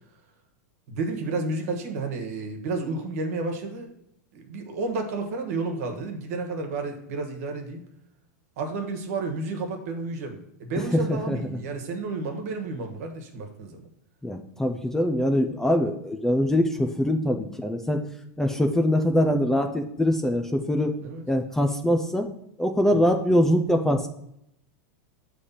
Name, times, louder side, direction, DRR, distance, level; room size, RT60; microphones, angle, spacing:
voice 1, 0.9-3.9 4.3-7.8 8.6-13.9 21.0-21.2 22.9-23.0, right 3 dB, 65° right, 5 dB, 1.4 m, -31 dB
voice 2, 10.9-11.4 14.2-18.1 18.4-21.0 21.3-22.3 22.6-24.1, equal, 5° left, 5 dB, 0.4 m, -23 dB
6.8 x 3.3 x 5.6 m, 0.78 s
supercardioid pair, 145°, 9 cm